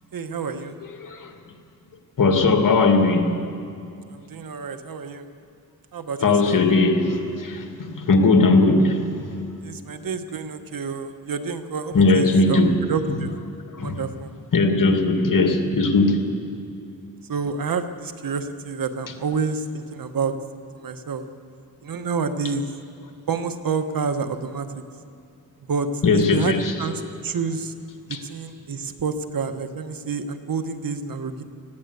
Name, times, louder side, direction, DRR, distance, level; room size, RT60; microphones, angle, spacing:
voice 1, 0.1-0.8 4.1-5.3 5.9-6.6 9.6-13.3 13.8-14.3 17.3-20.3 20.7-21.3 21.8-22.7 23.3-24.7 25.7-25.9 26.1-27.7 28.1-31.4, right 5 dB, 65° right, 9 dB, 1.4 m, -28 dB
voice 2, 1.0-1.3 2.2-3.4 6.2-9.2 11.9-12.8 13.8-14.0 14.5-16.2 26.0-26.7 28.1-28.2, left 3 dB, 60° left, 4 dB, 2.4 m, -19 dB
20.0 x 16.0 x 8.2 m, 2.5 s
cardioid pair, 60°, 37 cm